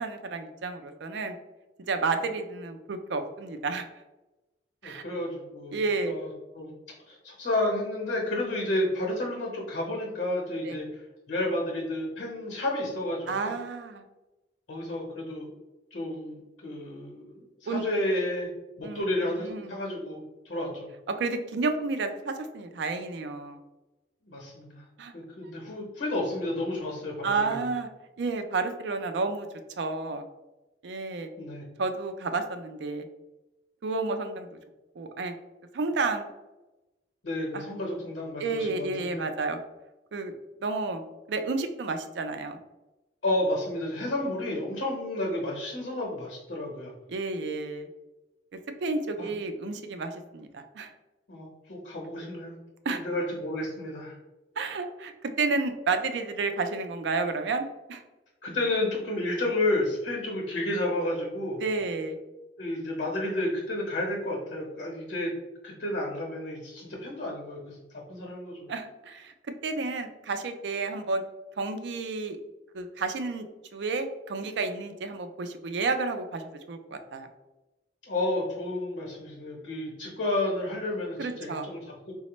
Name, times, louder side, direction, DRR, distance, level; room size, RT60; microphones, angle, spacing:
voice 1, 0.0-1.4 1.9-3.9 4.8-5.0 5.7-6.1 10.7-10.8 13.3-14.0 17.7-17.8 18.8-19.1 19.4-19.7 21.1-23.6 25.0-25.1 27.2-27.9 28.2-29.5 29.8-30.2 30.8-31.3 31.8-33.1 33.8-34.6 35.0-35.4 35.7-36.3 37.5-37.7 38.4-39.6 40.1-40.3 40.6-41.0 41.3-42.6 47.1-47.9 48.8-50.9 52.9-53.0 54.6-58.0 61.6-62.2 68.7-69.3 69.6-71.2 71.6-72.4 72.7-73.5 73.7-77.3 81.2-81.7, right 3 dB, 70° right, 7 dB, 0.4 m, -31 dB
voice 2, 4.8-6.7 7.1-11.0 11.3-13.5 14.7-15.5 15.9-18.5 18.8-20.2 20.4-20.9 24.2-24.8 25.1-27.6 31.4-31.6 37.2-39.2 43.2-46.9 49.2-49.3 51.3-52.6 52.9-54.2 58.4-61.6 62.6-65.3 65.6-68.7 78.0-82.1, left 1 dB, 75° left, -2 dB, 0.8 m, -31 dB
4.1 x 2.1 x 2.9 m, 1.0 s
head